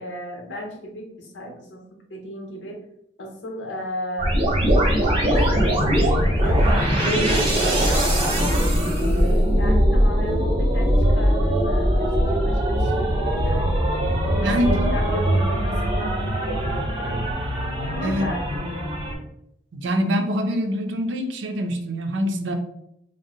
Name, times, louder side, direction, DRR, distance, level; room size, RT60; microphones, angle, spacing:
voice 1, 0.0-2.8 3.2-4.4 5.0-6.7 7.0-8.7 9.1-13.8 14.2-17.4 17.7-19.0, equal, 65° left, 1 dB, 0.8 m, -34 dB
sound 1, 4.2-19.1, equal, 30° right, 0.8 m, -21 dB
voice 2, 14.4-14.9 18.0-18.3 19.7-22.5, equal, 70° right, 6 dB, 0.4 m, -24 dB
2.6 x 2.1 x 3.8 m, 0.79 s
head